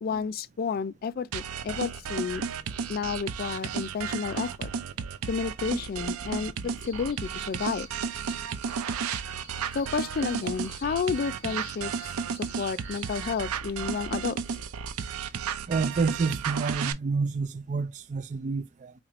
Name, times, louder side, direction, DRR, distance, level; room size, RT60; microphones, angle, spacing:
voice 1, 0.0-2.5 2.9-4.7 5.3-6.5 6.8-7.9 9.7-12.1 12.6-14.4, left 5 dB, 45° left, 0.3 m, -31 dB
sound 1, 1.3-16.9, right 6 dB, 90° right, 0.5 m, -33 dB
sound 2, 6.8-13.5, equal, 20° left, 1.5 m, -52 dB
voice 2, 15.7-18.9, right 4 dB, 35° right, 0.4 m, -29 dB
4.2 x 2.5 x 3.0 m
head